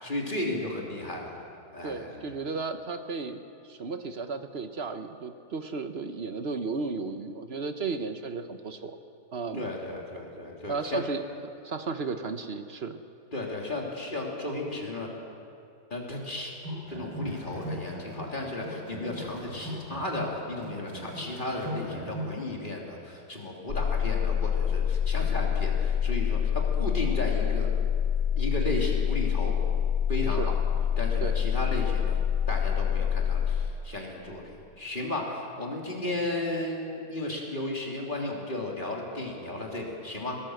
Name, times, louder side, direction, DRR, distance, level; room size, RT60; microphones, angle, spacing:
voice 1, 0.0-1.4 1.7-2.2 9.5-11.0 13.3-15.1 15.9-16.5 16.9-27.7 28.4-29.5 30.1-30.6 31.0-32.2 32.5-40.4, left 2 dB, 25° left, -1 dB, 3.2 m, -34 dB
voice 2, 1.8-9.0 9.3-9.7 10.7-11.2 11.6-13.0 30.3-30.5 31.2-31.4, right 4 dB, 45° right, 8 dB, 0.9 m, -34 dB
sound 1, 16.5-18.3 18.6-22.4, equal, 70° right, 5.9 m, -38 dB
sound 2, 23.7-33.7, left 8 dB, 55° left, 0.9 m, -26 dB
20.5 x 18.0 x 7.8 m, 2.5 s
omnidirectional pair, 1.9 m